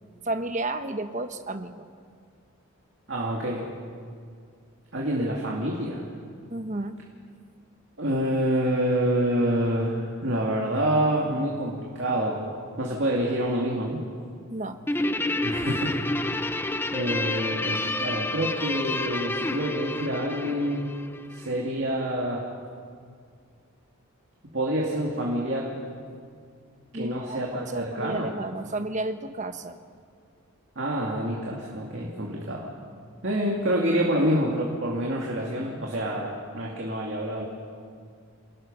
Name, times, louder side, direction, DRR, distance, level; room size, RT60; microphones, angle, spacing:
voice 1, 0.2-1.8 6.5-7.0 14.5-14.8 26.9-29.8, right 2 dB, 35° right, 8 dB, 1.0 m, -32 dB
voice 2, 3.1-3.7 4.9-6.1 8.0-12.4 12.8-14.0 15.4-16.0 16.9-20.9 21.3-22.4 24.5-25.7 26.9-28.3 30.8-32.7 33.2-37.4, right 1 dB, 55° right, -2 dB, 2.4 m, -27 dB
Guitar, 14.9-21.5, left 2 dB, 10° left, 0.5 m, -29 dB
28.5 x 19.5 x 5.5 m, 2.2 s
head